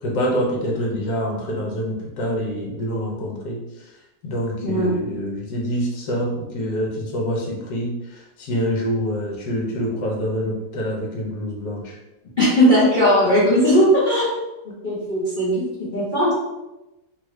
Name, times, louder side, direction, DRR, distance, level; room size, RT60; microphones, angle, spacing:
voice 1, 0.0-3.6 4.2-12.0, equal, 70° left, -2 dB, 1.4 m, -26 dB
voice 2, 4.6-4.9 12.4-14.3 14.8-16.3, equal, 45° left, -9 dB, 0.6 m, -18 dB
2.9 x 2.6 x 3.1 m, 0.99 s
omnidirectional pair, 1.8 m